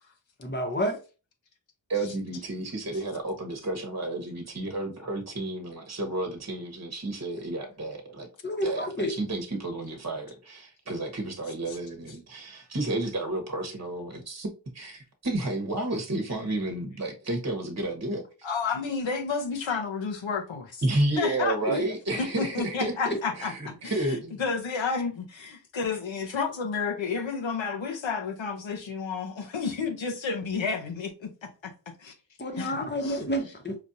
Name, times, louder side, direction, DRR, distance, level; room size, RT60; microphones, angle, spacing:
voice 1, 0.4-1.0 8.4-9.1 21.6-21.8 23.1-23.2 32.4-33.8, equal, 25° left, 1.0 m, -29 dB
voice 2, 1.9-8.3 8.6-14.5 14.7-18.2 20.8-24.4, right 2 dB, 35° right, 1.1 m, -31 dB
voice 3, 18.4-20.8 21.2-21.5 22.2-31.7 32.0-32.1 32.6-32.8 33.0-33.2, left 5 dB, 80° left, 0.9 m, -31 dB
4.9 x 2.5 x 2.7 m
wide cardioid pair, 65°, 45 cm